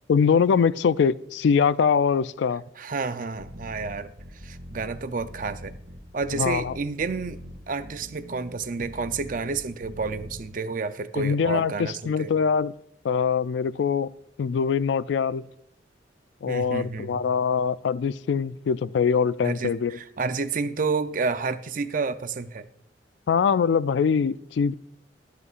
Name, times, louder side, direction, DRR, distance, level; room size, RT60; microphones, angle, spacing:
voice 1, 0.1-2.6 6.4-6.7 11.2-12.7 13.0-14.1 14.4-15.4 16.4-20.0 23.3-24.7, left 6 dB, 75° left, 0.3 m, -23 dB
voice 2, 2.8-5.7 6.1-7.4 7.7-12.3 16.5-17.2 19.4-22.7, right 4 dB, 45° right, 0.5 m, -30 dB
sound 1, 3.4-10.4, equal, 85° right, 2.0 m, -42 dB
22.0 x 8.2 x 2.5 m
head